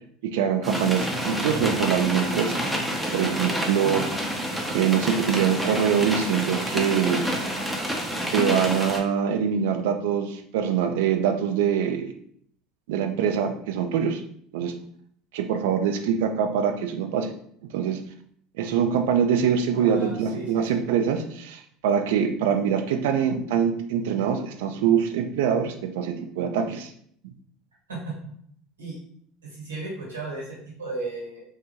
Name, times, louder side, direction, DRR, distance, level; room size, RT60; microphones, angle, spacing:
voice 1, 0.2-2.9 3.1-4.1 4.7-7.2 8.3-12.1 12.9-14.2 14.5-14.8 15.3-17.3 17.7-18.0 18.6-26.9, right 8 dB, 65° right, 6 dB, 0.3 m, -24 dB
sound 1, 0.6-9.0, equal, 5° right, 0.6 m, -28 dB
voice 2, 19.7-20.8 27.9-28.3 28.8-29.0 29.4-31.4, right 2 dB, 85° right, -5 dB, 1.1 m, -35 dB
2.7 x 2.3 x 2.7 m, 0.64 s
figure-of-eight pair, 75°, 0 cm